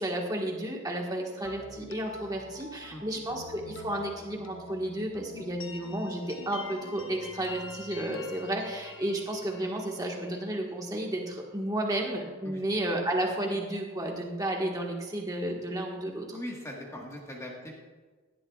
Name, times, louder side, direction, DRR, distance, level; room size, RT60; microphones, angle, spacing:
voice 1, 0.0-16.4, right 1 dB, 15° right, 0 dB, 1.4 m, -32 dB
sound 1, 1.4-11.2, left 4 dB, 70° left, 0.9 m, -46 dB
voice 2, 16.3-17.8, left 1 dB, 15° left, -2 dB, 1.4 m, -40 dB
17.5 x 11.5 x 2.4 m, 1.4 s
head